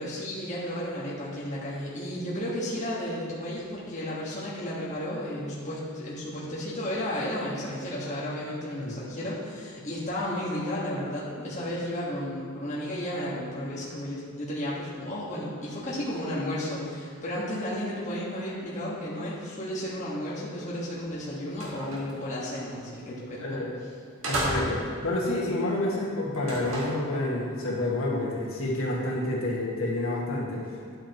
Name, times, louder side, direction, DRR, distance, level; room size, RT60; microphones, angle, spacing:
voice 1, 0.0-23.6, left 1 dB, 35° left, -7 dB, 1.5 m, -33 dB
sound 1, 21.0-21.1 21.5-22.2 23.5-23.7 24.2-25.0 26.3-27.0, right 1 dB, 65° right, 1.8 m, -33 dB
voice 2, 24.2-31.0, left 1 dB, 70° left, -4 dB, 1.8 m, -29 dB
10.5 x 8.6 x 3.0 m, 2.2 s
head